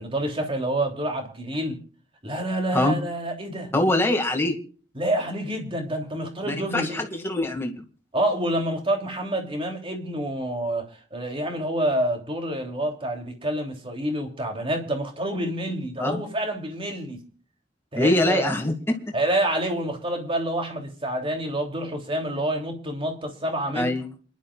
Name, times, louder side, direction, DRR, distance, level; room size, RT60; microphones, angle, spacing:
voice 1, 0.0-1.8 2.2-3.7 4.9-7.0 8.1-17.2 17.9-18.6 19.1-23.9, right 1 dB, 30° right, 3 dB, 3.2 m, -28 dB
voice 2, 3.7-4.6 6.4-7.8 16.0-16.2 17.9-19.1 23.7-24.1, left 1 dB, 15° left, 3 dB, 2.2 m, -23 dB
28.0 x 11.5 x 2.5 m, 0.42 s
head